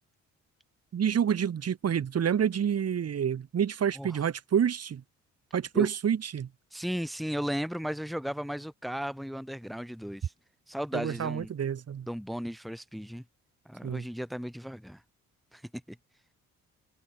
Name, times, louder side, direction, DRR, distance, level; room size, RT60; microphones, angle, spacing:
voice 1, 0.9-5.0 5.5-6.5 10.9-12.1 13.8-14.0, right 8 dB, 55° right, 4.9 m, -28 dB
voice 2, 6.7-10.3 10.7-11.5 12.1-13.2 13.7-15.0 15.5-15.6 15.9-16.0, equal, ahead, 2.1 m, -35 dB
cardioid pair, 90°, 30 cm